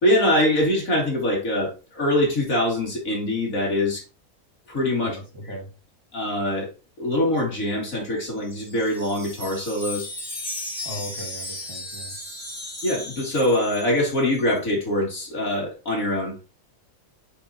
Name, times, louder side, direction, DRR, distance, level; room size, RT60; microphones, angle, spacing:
voice 1, 0.0-4.0 4.7-5.2 6.1-6.7 7.0-10.1 12.8-16.4, left 1 dB, 65° left, 3.1 m, -23 dB
voice 2, 5.0-5.7 10.8-12.2, equal, 15° right, 1.9 m, -37 dB
Wind chime, 8.4-14.4, left 2 dB, ahead, 2.8 m, -36 dB
8.7 x 5.0 x 2.8 m
omnidirectional pair, 1.5 m